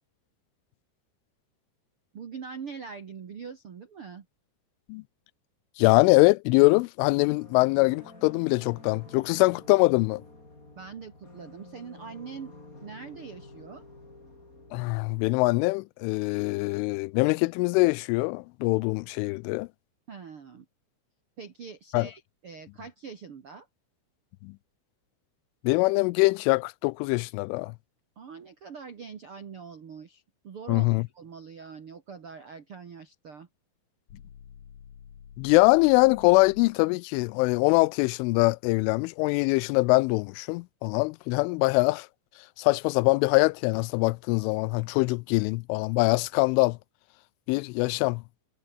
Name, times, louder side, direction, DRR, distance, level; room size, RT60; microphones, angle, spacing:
voice 1, 2.1-4.2 10.7-12.5 12.8-13.8 20.1-20.6 21.4-23.7 28.1-30.8 31.1-33.5, right 6 dB, 70° right, 1.3 m, -43 dB
voice 2, 5.8-10.2 14.7-19.7 21.9-22.1 24.4-24.5 25.6-27.7 30.7-31.0 35.4-42.1 42.6-46.8 47.5-48.2, left 25 dB, 90° left, 3.1 m, -23 dB
sound 1, 7.2-15.2, left 2 dB, 15° left, 5.4 m, -49 dB
sound 2, 34.1-36.9, left 9 dB, 70° left, 5.4 m, -49 dB
omnidirectional pair, 5.5 m